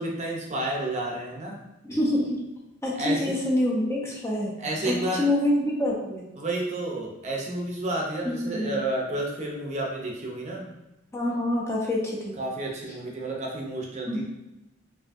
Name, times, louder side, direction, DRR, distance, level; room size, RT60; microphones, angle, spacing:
voice 1, 0.0-1.6 2.9-3.2 4.6-5.3 6.4-10.6 12.4-14.2, right 1 dB, 35° right, -1 dB, 0.7 m, -30 dB
voice 2, 1.8-2.4 2.8-4.6 4.9-6.3 8.4-8.8 11.1-12.4 14.1-14.2, left 1 dB, 15° left, -4 dB, 0.7 m, -26 dB
4.8 x 2.7 x 2.6 m, 0.96 s
head